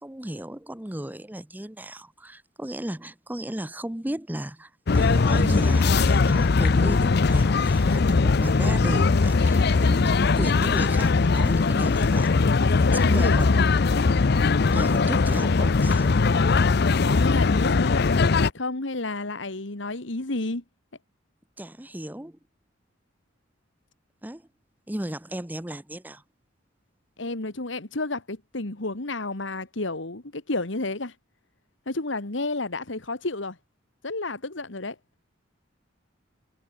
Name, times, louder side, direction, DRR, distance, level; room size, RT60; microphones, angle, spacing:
voice 1, 0.0-12.3 12.9-13.6 14.7-16.1 21.6-22.4 24.2-24.5 24.9-26.2, right 1 dB, 10° right, 0.8 m, -35 dB
sound 1, 4.9-18.5, left 4 dB, 55° left, 0.6 m, -20 dB
voice 2, 12.6-13.8 17.0-20.6 27.2-31.2 31.9-33.6 34.0-35.0, left 2 dB, 75° left, 2.0 m, -31 dB
head